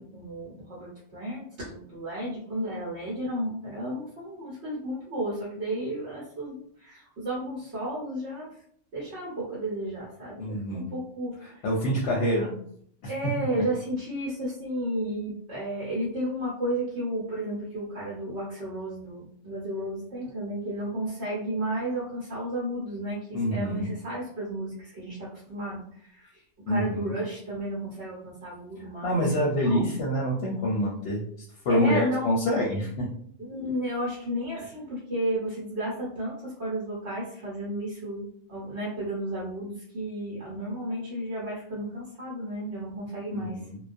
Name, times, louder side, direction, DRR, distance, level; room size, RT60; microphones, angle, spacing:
voice 1, 0.0-8.5 8.9-11.6 13.1-25.8 26.1-26.3 26.7-29.8 31.7-32.2 33.5-43.6, right 1 dB, 60° right, -7 dB, 1.1 m, -33 dB
voice 2, 10.4-10.9 11.4-12.6 13.0-13.3 23.3-23.9 26.7-27.1 29.0-31.2 31.6-33.1 43.3-43.8, equal, 65° left, -2 dB, 0.8 m, -26 dB
2.2 x 2.2 x 2.5 m, 0.63 s
omnidirectional pair, 1.3 m